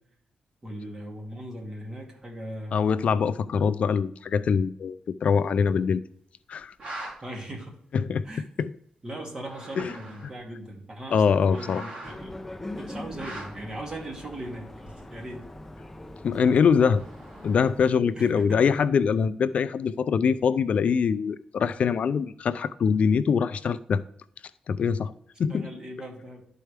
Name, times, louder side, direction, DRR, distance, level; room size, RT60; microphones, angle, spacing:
voice 1, 0.6-2.9 7.2-7.7 8.2-8.5 9.0-11.2 11.5-12.4 12.8-14.7 15.1-15.4 18.1-18.6 25.5-26.4, right 1 dB, 30° right, -1 dB, 2.4 m, -38 dB
voice 2, 2.7-6.0 6.5-6.7 7.9-8.3 8.6-8.7 9.8-9.9 11.1-11.9 16.2-17.0 17.4-24.0 24.7-25.1 25.4-25.7, left 6 dB, 65° left, 14 dB, 0.3 m, -23 dB
sound 1, 6.6-7.1 8.3-8.4 9.3-10.4 11.2-12.3 13.1-13.6 14.9-15.2 16.7-17.8, right 1 dB, 45° right, 3.7 m, -42 dB
sound 2, 12.0-17.9, left 1 dB, 10° left, 0.6 m, -42 dB
12.0 x 4.6 x 3.4 m, 0.69 s
cardioid pair, 105°, 2 cm